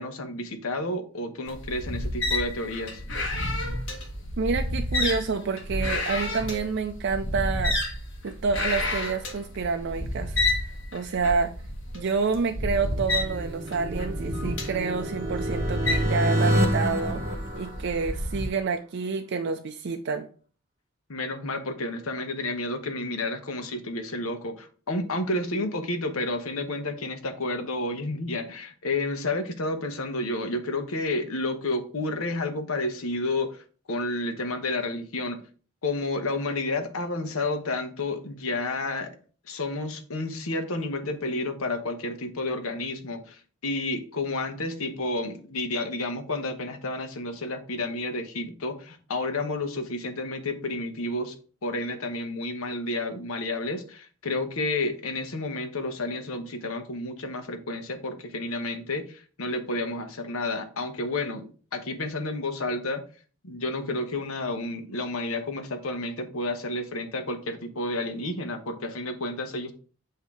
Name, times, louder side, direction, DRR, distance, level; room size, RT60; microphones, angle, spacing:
voice 1, 0.0-3.0 21.1-35.4 35.8-39.2 39.5-51.4 51.6-63.0 63.4-69.7, left 2 dB, 85° left, 8 dB, 0.9 m, -31 dB
sound 1, 1.5-18.5, left 1 dB, 60° left, 1.6 m, -30 dB
voice 2, 4.4-7.8 8.2-11.5 11.9-17.2 17.5-20.3, right 4 dB, 55° right, 6 dB, 0.4 m, -28 dB
sound 2, 12.6-18.4, right 1 dB, 15° right, 0.9 m, -28 dB
8.0 x 2.8 x 4.7 m, 0.40 s
head